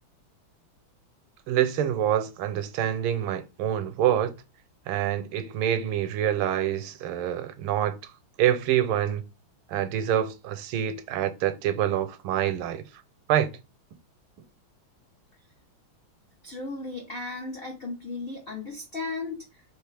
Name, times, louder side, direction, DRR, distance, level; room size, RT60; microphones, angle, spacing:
voice 1, 1.5-4.3 4.9-8.0 8.4-9.2 9.7-12.8 13.3-13.5, right 11 dB, 85° right, 1.4 m, -26 dB
voice 2, 16.4-19.6, left 3 dB, 80° left, 0.5 m, -35 dB
3.5 x 3.2 x 3.2 m
omnidirectional pair, 2.2 m